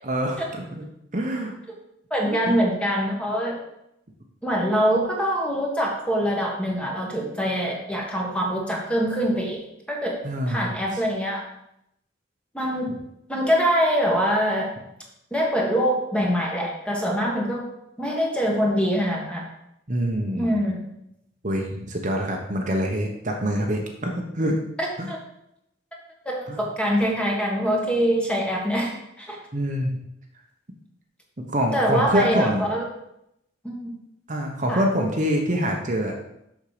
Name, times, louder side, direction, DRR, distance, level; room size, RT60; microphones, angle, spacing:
voice 1, 0.0-0.9 1.1-1.5 2.3-2.6 10.2-11.0 19.9-20.5 21.4-24.6 25.0-25.1 26.5-26.6 29.5-30.0 31.4-32.6 34.3-36.1, equal, 40° right, 2 dB, 0.9 m, -25 dB
voice 2, 2.1-3.6 4.4-9.6 9.9-10.2 10.5-11.4 12.5-12.9 13.3-14.7 15.3-17.6 18.0-19.4 20.4-20.8 24.8-25.2 26.2-28.9 29.2-29.4 31.7-32.9 33.6-33.9 34.7-34.8, equal, 5° left, -1 dB, 1.5 m, -24 dB
7.0 x 6.4 x 5.0 m, 0.81 s
head